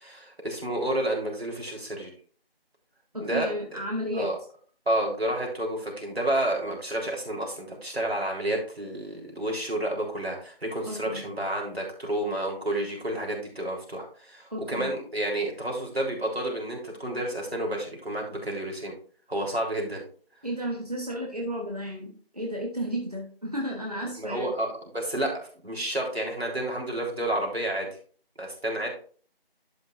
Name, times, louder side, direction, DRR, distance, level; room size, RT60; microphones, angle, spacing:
voice 1, 0.0-2.1 3.2-3.8 4.1-4.4 4.9-18.9 19.3-20.0 24.2-24.7 24.9-27.9 28.4-28.9, right 1 dB, 90° right, -1 dB, 3.7 m, -30 dB
voice 2, 3.1-4.3 10.9-11.3 14.5-14.9 20.4-24.5, equal, 40° right, 0 dB, 1.3 m, -33 dB
11.5 x 5.6 x 2.6 m, 0.44 s
figure-of-eight pair, 180°, 30 cm